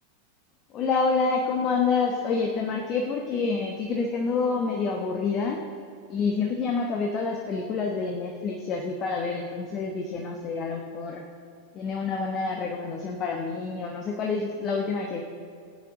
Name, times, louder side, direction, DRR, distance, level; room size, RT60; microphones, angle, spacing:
voice 1, 0.7-5.6 6.1-11.2 11.7-15.2, left 4 dB, 30° left, 2 dB, 1.0 m, -27 dB
16.0 x 9.4 x 3.7 m, 2.2 s
figure-of-eight pair, 90°, 0 cm